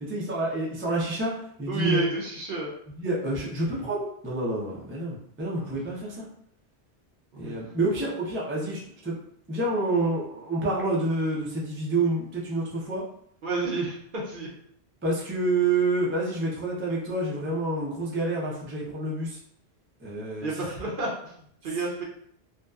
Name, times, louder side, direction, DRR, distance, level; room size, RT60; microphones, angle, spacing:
voice 1, 0.0-2.1 3.0-6.3 7.4-9.2 9.5-13.0 15.0-19.4 20.0-20.5, right 2 dB, 20° right, -5 dB, 0.3 m, -28 dB
voice 2, 1.7-2.7 5.6-5.7 7.4-7.6 13.4-14.5 20.4-22.0, right 3 dB, 60° right, -3 dB, 0.7 m, -30 dB
2.7 x 2.2 x 2.3 m, 0.67 s
omnidirectional pair, 1.1 m